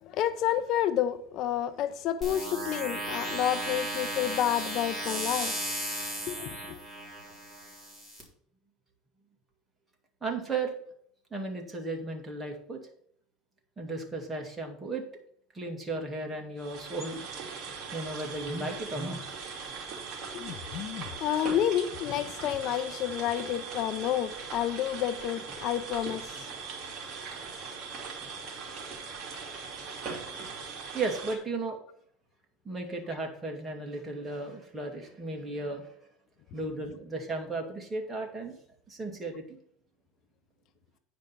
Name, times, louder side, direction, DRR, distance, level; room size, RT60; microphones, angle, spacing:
voice 1, 0.0-5.6 6.3-6.8 20.3-26.5 27.5-27.8 29.5-29.7, left 11 dB, 50° left, 0.6 m, -30 dB
sound 1, 2.2-8.2, right 1 dB, 5° left, 3.8 m, -35 dB
voice 2, 10.2-10.7 11.3-12.8 13.8-15.0 15.5-17.2 17.9-19.2 30.9-31.8 32.6-35.9 36.5-38.6 38.9-39.6, right 3 dB, 15° right, 2.2 m, -35 dB
sound 2, 16.6-31.4, right 5 dB, 40° right, 2.8 m, -40 dB
9.7 x 5.2 x 6.0 m
supercardioid pair, 135°, 0 cm